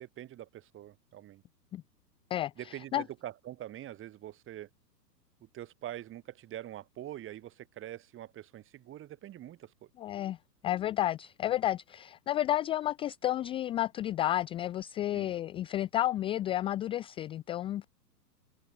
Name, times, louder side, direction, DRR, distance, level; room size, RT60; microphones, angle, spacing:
voice 1, 0.0-1.4 2.6-4.7 5.4-9.9 15.1-15.3, right 13 dB, 25° right, 3.4 m, -44 dB
voice 2, 2.3-3.0 10.0-10.4 10.6-17.9, left 13 dB, 10° left, 0.5 m, -31 dB
hypercardioid pair, 115°, 50 cm